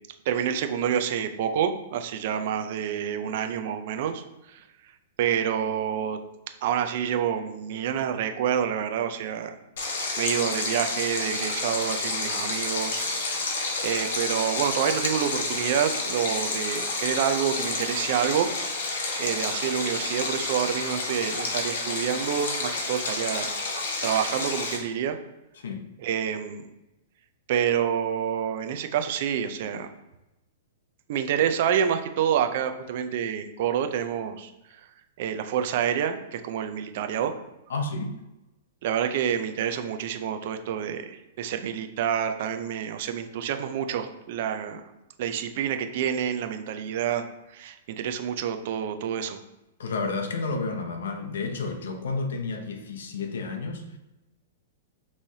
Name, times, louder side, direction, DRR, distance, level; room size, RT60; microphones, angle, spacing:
voice 1, 0.3-4.2 4.5-4.6 5.2-6.2 6.6-9.5 10.2-13.1 13.8-18.5 19.2-23.5 24.0-25.2 26.0-26.7 27.5-29.9 31.1-34.5 35.2-37.3 38.8-44.8 45.2-47.2 47.5-49.4, right 8 dB, 50° right, 0.4 m, -28 dB
Stream, 9.8-24.8, left 3 dB, 70° left, 1.0 m, -30 dB
voice 2, 37.7-38.2 49.8-54.0, left 3 dB, 85° left, 0.7 m, -31 dB
5.4 x 3.1 x 2.7 m
hypercardioid pair, 155°, 0 cm